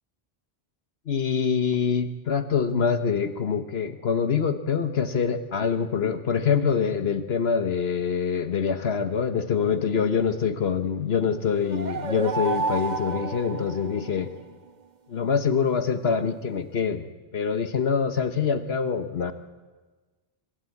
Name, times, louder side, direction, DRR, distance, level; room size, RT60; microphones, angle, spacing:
voice 1, 1.1-14.3 15.1-17.0 17.3-19.3, left 6 dB, 65° left, 10 dB, 1.3 m, -25 dB
sound 1, 11.5-14.4, right 4 dB, 45° right, 1.1 m, -31 dB
25.0 x 21.5 x 8.5 m, 1.3 s
omnidirectional pair, 1.1 m